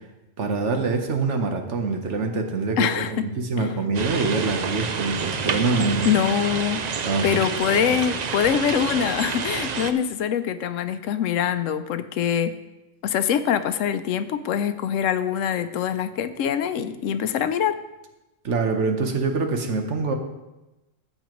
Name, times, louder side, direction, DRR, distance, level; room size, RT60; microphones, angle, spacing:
voice 1, 0.4-6.1 7.0-7.3 7.7-8.0 18.4-20.1, right 3 dB, 65° right, 4 dB, 1.3 m, -25 dB
voice 2, 2.8-3.3 3.6-3.7 6.0-6.9 7.2-12.5 13.0-17.8, left 8 dB, 85° left, 11 dB, 1.0 m, -24 dB
sound 1, 3.9-9.9, right 6 dB, 50° right, 0.5 m, -28 dB
13.5 x 8.5 x 3.1 m, 1.0 s
omnidirectional pair, 1.3 m